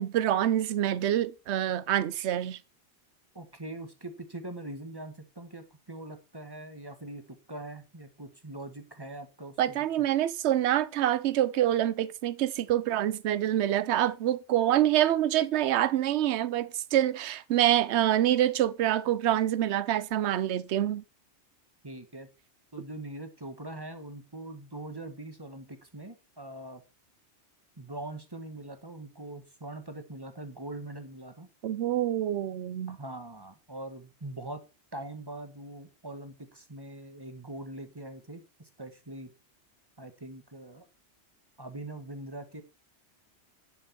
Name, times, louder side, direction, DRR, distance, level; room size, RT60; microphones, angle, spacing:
voice 1, 0.0-2.6 9.6-21.0 31.6-33.0, right 12 dB, 75° right, 0.9 m, -26 dB
voice 2, 3.3-10.1 21.8-22.3 22.7-26.8 27.8-31.5 32.9-34.7 34.9-39.3 40.0-40.8 41.6-42.6, right 1 dB, 20° right, 1.4 m, -42 dB
11.0 x 6.2 x 4.4 m
omnidirectional pair, 1.2 m